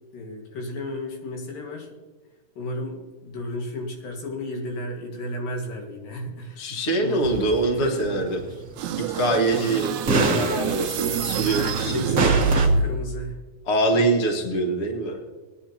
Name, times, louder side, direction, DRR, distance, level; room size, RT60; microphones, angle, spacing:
voice 1, 0.1-1.9 2.6-8.6 9.5-9.7 11.5-12.4 12.8-13.4 13.9-14.0, left 1 dB, 80° left, 1 dB, 3.6 m, -34 dB
voice 2, 6.6-8.4 9.1-12.2 13.7-15.2, right 2 dB, 35° left, 2 dB, 1.0 m, -24 dB
sound 1, 7.2-9.0 9.3-9.4 10.1-11.9 12.2-12.7, right 2 dB, 60° right, 0.8 m, -25 dB
sound 2, 8.8-13.1, right 5 dB, 75° right, 1.8 m, -25 dB
20.5 x 10.0 x 2.9 m, 1.2 s
omnidirectional pair, 3.9 m